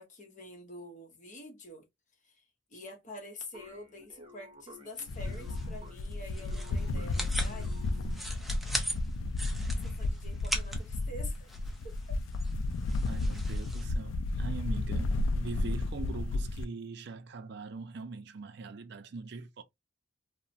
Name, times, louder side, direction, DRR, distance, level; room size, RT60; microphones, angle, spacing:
voice 1, 0.0-1.9 2.2-2.4 2.7-7.7 9.8-11.5 11.8-11.9, left 2 dB, 40° left, 0.9 m, -47 dB
sound 1, 3.5-8.3, left 1 dB, 25° right, 0.8 m, -54 dB
sound 2, 5.0-13.8, equal, ahead, 0.5 m, -41 dB
sound 3, 5.1-16.7, left 2 dB, 80° left, 0.3 m, -33 dB
voice 2, 13.1-19.6, right 3 dB, 60° right, 0.4 m, -42 dB
2.8 x 2.1 x 2.5 m
head